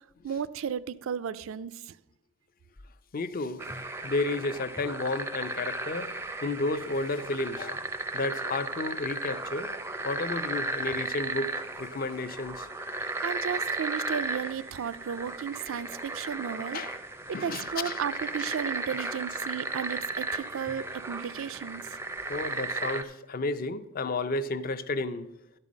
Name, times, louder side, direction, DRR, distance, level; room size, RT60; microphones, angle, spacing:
voice 1, 0.2-1.9 13.0-16.8 17.4-22.0, right 8 dB, 70° right, 0.4 m, -34 dB
voice 2, 3.1-3.6 4.0-6.1 6.4-7.8 8.1-9.7 10.0-12.7 15.7-15.8 16.7-16.9 17.3-18.0 18.4-18.5 22.3-25.3, left 2 dB, 45° left, 0.5 m, -32 dB
sound 1, 3.6-23.0, right 2 dB, 10° right, 0.4 m, -35 dB
11.5 x 5.5 x 6.2 m
head